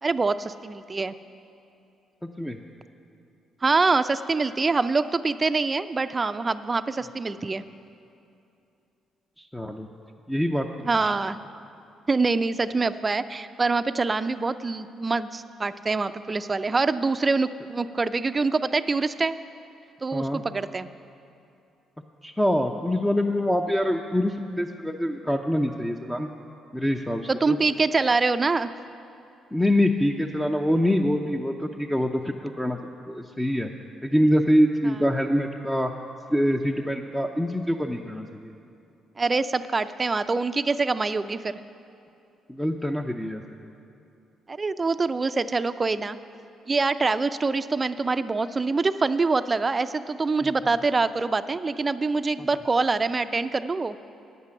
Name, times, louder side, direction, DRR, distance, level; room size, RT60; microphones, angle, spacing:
voice 1, 0.0-1.1 3.6-7.6 10.8-11.4 12.1-19.3 20.0-20.9 27.3-28.7 39.2-41.6 44.5-46.2 46.7-54.0, right 3 dB, 35° right, 12 dB, 0.5 m, -25 dB
voice 2, 2.2-2.6 9.4-9.9 10.3-10.7 20.1-20.4 22.2-26.3 26.7-27.6 29.5-32.8 33.1-33.7 34.0-35.9 36.3-38.5 42.5-43.4 50.4-50.5 52.4-52.5, equal, 10° left, 2 dB, 0.7 m, -25 dB
9.8 x 8.2 x 7.6 m, 2.6 s
hypercardioid pair, 55°, 0 cm